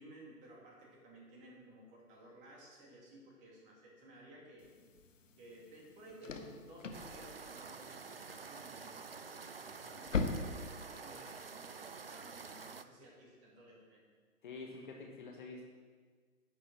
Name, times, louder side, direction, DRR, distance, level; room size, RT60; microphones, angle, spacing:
voice 1, 0.0-4.7 5.4-14.0, right 1 dB, 15° right, -2 dB, 2.3 m, -56 dB
sound 1, 4.6-11.7, left 4 dB, 55° left, 1.3 m, -43 dB
sound 2, 6.9-12.8, right 5 dB, 45° right, 0.4 m, -49 dB
voice 2, 14.4-15.6, left 3 dB, 35° left, 1 dB, 1.3 m, -47 dB
11.0 x 6.9 x 7.5 m, 1.5 s
figure-of-eight pair, 135°, 45 cm